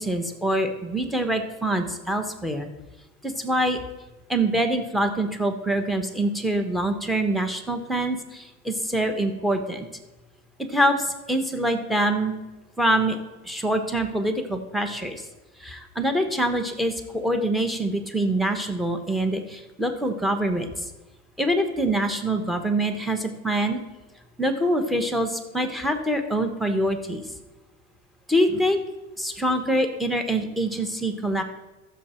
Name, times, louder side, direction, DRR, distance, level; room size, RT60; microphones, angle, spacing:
voice 1, 0.0-2.7 3.2-3.8 4.3-9.9 10.6-12.3 12.8-13.2 13.4-15.2 15.6-20.7 21.4-23.8 24.4-27.3 28.3-28.8 29.2-31.4, right 1 dB, ahead, 6 dB, 1.1 m, -25 dB
14.0 x 6.7 x 4.4 m, 1.1 s
supercardioid pair, 115°, 35 cm